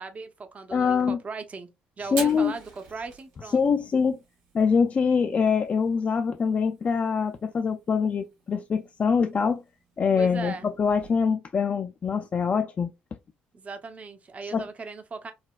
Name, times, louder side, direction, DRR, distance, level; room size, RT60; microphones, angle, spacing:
voice 1, 0.0-1.7 2.0-3.6 10.2-10.7 13.5-15.3, right 4 dB, 35° right, 0.7 m, -38 dB
voice 2, 0.7-1.2 2.1-2.5 3.5-4.2 4.5-9.6 10.0-10.5 10.8-12.9 14.5-14.6, left 6 dB, 40° left, 0.4 m, -24 dB
Fire, 2.0-11.2, right 4 dB, 80° right, 1.7 m, -46 dB
4.0 x 2.2 x 2.3 m
supercardioid pair, 70°, 4 cm